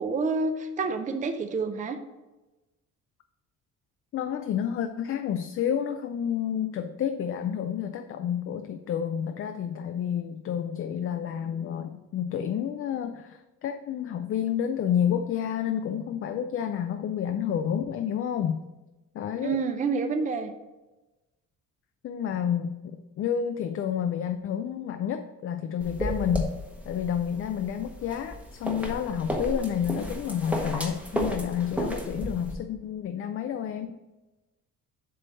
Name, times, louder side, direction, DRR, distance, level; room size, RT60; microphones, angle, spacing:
voice 1, 0.0-2.0 19.4-20.5, right 4 dB, 25° right, 7 dB, 0.5 m, -28 dB
voice 2, 4.1-18.6 19.1-19.6 22.0-26.5 26.9-34.0, left 9 dB, 45° left, 7 dB, 0.4 m, -30 dB
sound 1, 25.8-32.5, equal, 5° right, 0.9 m, -33 dB
7.6 x 3.3 x 6.2 m, 1.1 s
cardioid pair, 145°, 32 cm